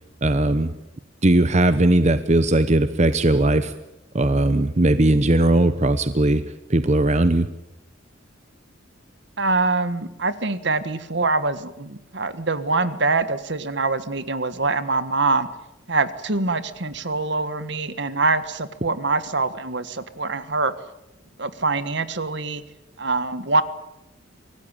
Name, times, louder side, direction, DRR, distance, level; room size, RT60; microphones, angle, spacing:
voice 1, 0.2-0.7 1.2-3.7 4.1-6.4 6.7-7.5, right 1 dB, 35° right, 11 dB, 0.9 m, -18 dB
voice 2, 9.4-15.5 15.9-20.7 21.4-22.6 23.0-23.6, right 3 dB, 60° right, 13 dB, 1.5 m, -24 dB
25.0 x 18.0 x 9.0 m, 0.92 s
head